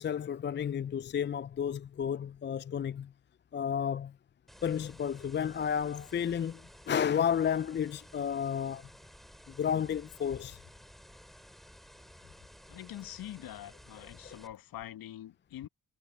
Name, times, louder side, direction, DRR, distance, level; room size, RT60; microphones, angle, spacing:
voice 1, 0.0-3.1 3.5-4.1 4.6-6.6 6.9-8.9 9.5-10.6 14.2-14.4, left 8 dB, 25° left, 0.6 m, -32 dB
sound 1, 4.5-14.5, equal, ahead, 6.2 m, -55 dB
voice 2, 12.7-15.7, left 13 dB, 50° left, 2.0 m, -44 dB
hypercardioid pair, 65°, 44 cm